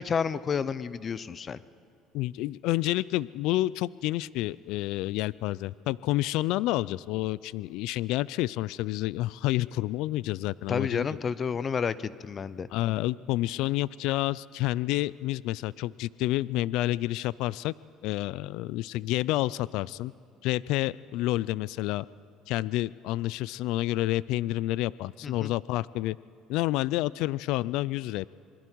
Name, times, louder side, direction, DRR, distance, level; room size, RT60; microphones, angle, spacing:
voice 1, 0.0-1.6 10.7-12.7 25.2-25.5, left 6 dB, 35° left, 16 dB, 0.7 m, -30 dB
voice 2, 2.1-11.1 12.7-17.7 18.0-20.1 20.4-22.1 22.5-26.2 26.5-28.3, left 16 dB, 75° left, 21 dB, 0.4 m, -29 dB
27.0 x 22.0 x 4.7 m, 2.6 s
supercardioid pair, 95°, 0 cm